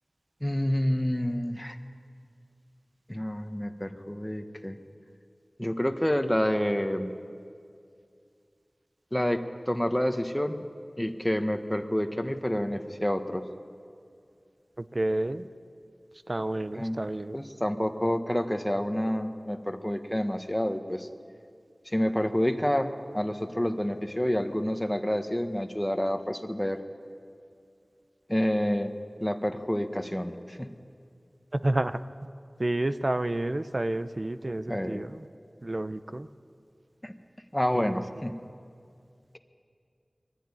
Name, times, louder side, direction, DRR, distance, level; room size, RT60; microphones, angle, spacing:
voice 1, 0.4-1.8 3.1-4.8 5.6-7.1 9.1-10.7 11.0-13.4 16.7-17.0 17.3-21.1 21.9-26.8 28.3-28.9 29.2-30.7 34.7-35.1 37.0-37.1 37.5-38.3, equal, 15° left, 7 dB, 1.4 m, -28 dB
voice 2, 14.9-15.5 16.3-17.4 31.5-32.0 32.6-35.2 35.6-36.3 37.7-37.9, right 1 dB, 50° right, 12 dB, 0.8 m, -29 dB
23.5 x 14.5 x 9.9 m, 2.3 s
wide cardioid pair, 50°, 0 cm